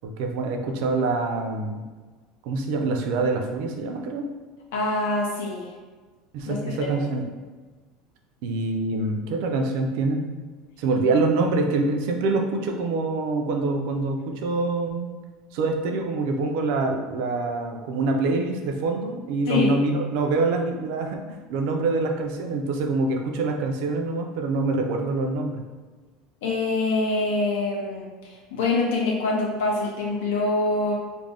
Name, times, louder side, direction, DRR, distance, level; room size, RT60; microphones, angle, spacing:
voice 1, 0.0-1.8 2.4-4.2 6.3-7.2 8.4-10.3 10.8-15.1 15.5-21.2 21.5-25.6, right 3 dB, 55° right, 3 dB, 0.3 m, -25 dB
voice 2, 4.7-5.7 6.5-6.6 6.9-7.0 19.5-19.7 26.4-30.9, left 3 dB, 90° left, -2 dB, 0.5 m, -25 dB
2.4 x 2.1 x 3.3 m, 1.3 s
cardioid pair, 175°, 0 cm